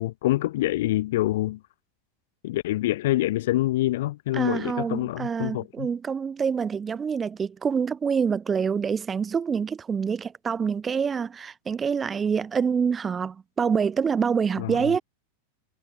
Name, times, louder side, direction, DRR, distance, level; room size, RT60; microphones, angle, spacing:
voice 1, 0.0-1.6 2.4-5.9 14.6-15.0, left 16 dB, 55° left, 5.1 m, -26 dB
voice 2, 4.3-15.0, right 6 dB, 20° right, 6.5 m, -26 dB
figure-of-eight pair, 90°, 0 cm